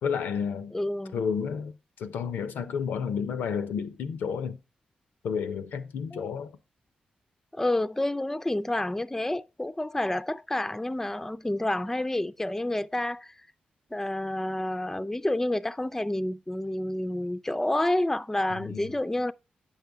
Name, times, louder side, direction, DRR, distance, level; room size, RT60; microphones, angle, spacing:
voice 1, 0.0-0.7 1.1-4.6 5.2-6.6 18.5-18.9, left 6 dB, 85° left, 0.5 m, -31 dB
voice 2, 0.7-1.2 6.1-6.3 7.5-13.3 13.9-19.3, left 1 dB, 10° left, 0.4 m, -29 dB
8.6 x 5.5 x 3.4 m
supercardioid pair, 45°, 3 cm